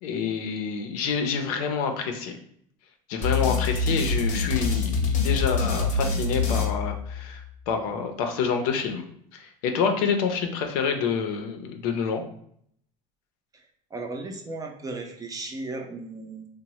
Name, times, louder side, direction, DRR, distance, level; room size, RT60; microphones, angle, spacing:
voice 1, 0.0-2.3 3.1-9.0 9.3-12.2, left 6 dB, 85° left, 5 dB, 0.5 m, -27 dB
sound 1, 3.2-7.5, left 4 dB, 40° left, 0.7 m, -25 dB
voice 2, 13.9-16.5, right 2 dB, 20° right, 2 dB, 0.4 m, -35 dB
2.9 x 2.0 x 2.8 m, 0.66 s
supercardioid pair, 115°, 18 cm